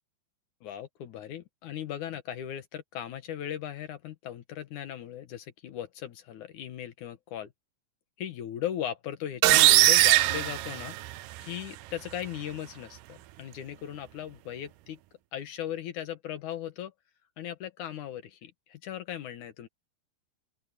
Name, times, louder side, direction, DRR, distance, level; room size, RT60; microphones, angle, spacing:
voice 1, 0.6-7.5 8.2-11.0 11.4-15.0 15.3-16.9 17.4-19.7, left 10 dB, 65° left, 2.2 m, -38 dB
sound 1, 9.4-11.4, right 17 dB, 90° right, 1.8 m, -20 dB
open air
omnidirectional pair, 4.5 m